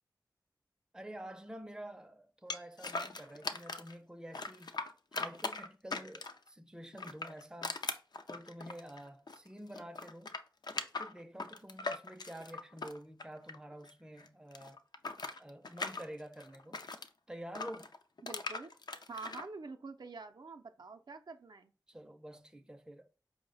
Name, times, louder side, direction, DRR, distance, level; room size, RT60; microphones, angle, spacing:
voice 1, 0.9-4.7 5.1-7.8 8.3-10.4 11.0-14.8 15.4-16.8 17.3-17.9 21.9-23.1, right 1 dB, 10° right, 0.5 m, -49 dB
sound 1, 2.5-3.9 4.3-6.5 6.9-9.5 9.7-13.9 14.2-17.1 17.5-19.4, left 3 dB, 65° left, 0.4 m, -40 dB
voice 2, 18.2-18.7 19.1-21.7, right 4 dB, 65° right, 0.4 m, -47 dB
4.6 x 2.1 x 3.8 m
cardioid pair, 40°, 8 cm